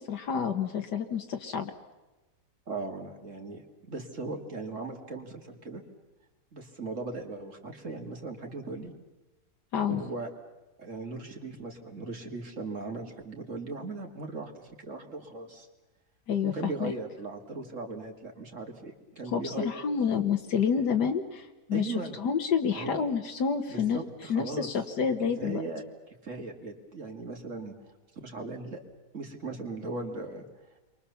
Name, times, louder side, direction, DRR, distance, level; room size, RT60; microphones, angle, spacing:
voice 1, 0.0-1.7 9.7-10.0 16.3-16.9 19.3-24.0 24.3-25.6, left 7 dB, 80° left, 4 dB, 1.9 m, -29 dB
voice 2, 2.7-3.6 3.9-5.8 6.5-8.9 9.9-10.3 10.8-15.7 16.4-19.7 21.7-22.2 22.7-23.0 23.7-24.7 25.4-25.8 26.2-27.7 28.2-28.8 29.1-30.4, right 3 dB, 45° right, 3 dB, 2.9 m, -38 dB
29.5 x 23.5 x 7.1 m, 1.1 s
omnidirectional pair, 1.8 m